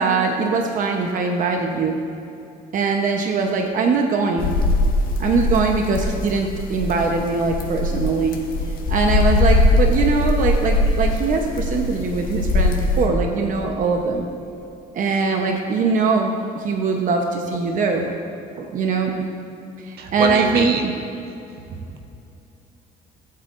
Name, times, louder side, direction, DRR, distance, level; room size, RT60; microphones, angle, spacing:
voice 1, 0.0-1.9 2.7-4.6 5.2-8.4 8.9-14.3 14.9-18.1 18.6-19.2 19.8-20.9, right 4 dB, 50° right, 2 dB, 1.0 m, -21 dB
sound 1, 4.4-13.1, left 2 dB, 60° left, 1.5 m, -21 dB
voice 2, 20.0-20.8 21.7-22.0, right 4 dB, 70° right, 4 dB, 1.2 m, -24 dB
19.0 x 8.4 x 2.6 m, 2.7 s
cardioid pair, 110°, 17 cm